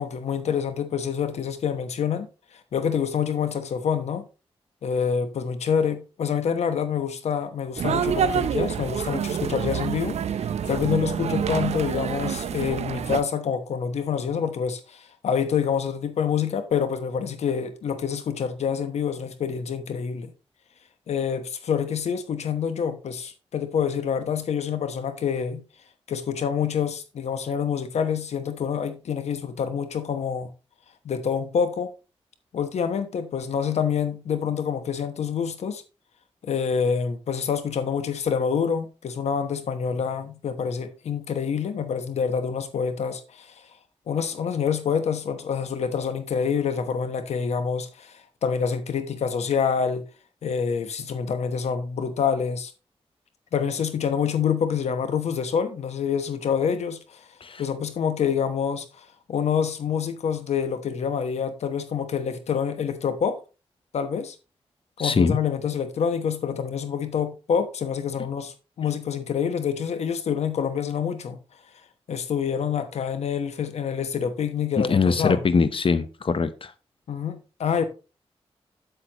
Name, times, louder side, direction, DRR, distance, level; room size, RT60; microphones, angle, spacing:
voice 1, 0.0-2.3 2.7-4.2 4.8-10.1 10.7-20.3 21.1-25.6 26.1-30.5 31.0-31.9 32.5-35.8 36.4-43.6 44.1-50.0 50.4-52.7 53.5-57.2 57.6-63.4 63.9-64.3 65.0-71.4 72.1-75.5 77.1-77.8, left 7 dB, 90° left, 1.1 m, -27 dB
sound 1, 7.8-13.2, right 8 dB, 85° right, 0.5 m, -27 dB
voice 2, 65.0-65.4 74.8-76.7, left 5 dB, 55° left, 0.9 m, -22 dB
8.2 x 7.7 x 3.0 m
cardioid pair, 60°, 11 cm